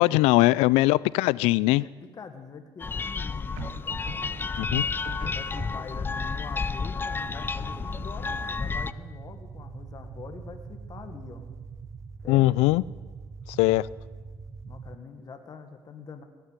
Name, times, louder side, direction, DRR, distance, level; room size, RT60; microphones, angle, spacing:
voice 1, 0.0-1.8 4.6-4.9 12.3-12.8 13.5-13.9, left 19 dB, 85° left, 21 dB, 0.4 m, -21 dB
sound 1, 0.9-1.5 3.6-6.2, right 10 dB, 80° right, 0.8 m, -43 dB
voice 2, 1.8-3.7 4.1-4.4 5.2-11.4 12.2-12.5 14.7-16.2, left 5 dB, 40° left, 6 dB, 1.5 m, -44 dB
sound 2, 2.8-8.9, left 4 dB, 20° left, 0.4 m, -31 dB
sound 3, 7.2-15.0, right 5 dB, 30° right, 0.6 m, -43 dB
18.0 x 6.6 x 9.7 m, 1.4 s
cardioid pair, 95°, 10 cm